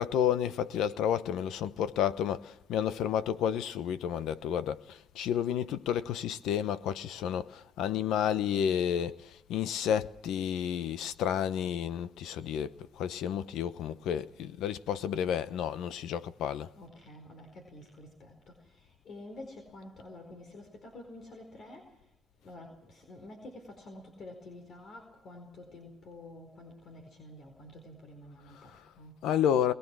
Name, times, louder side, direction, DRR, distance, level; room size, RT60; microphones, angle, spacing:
voice 1, 0.0-9.2 9.5-16.7 29.2-29.7, left 9 dB, 85° left, 1.0 m, -31 dB
voice 2, 16.7-22.1 22.4-29.2, left 1 dB, 60° left, 4.6 m, -49 dB
22.5 x 21.0 x 6.3 m
cardioid pair, 90°, 0 cm